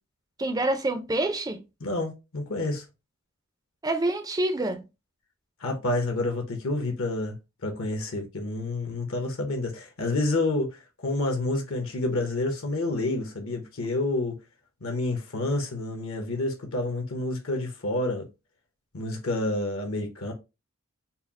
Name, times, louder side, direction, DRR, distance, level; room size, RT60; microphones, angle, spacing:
voice 1, 0.4-1.6 3.8-4.8, right 2 dB, 15° right, 0.4 m, -27 dB
voice 2, 1.8-2.9 5.6-7.3 7.6-14.4 14.8-18.3 18.9-20.3, left 2 dB, 65° left, 0.9 m, -29 dB
4.3 x 2.1 x 3.5 m
head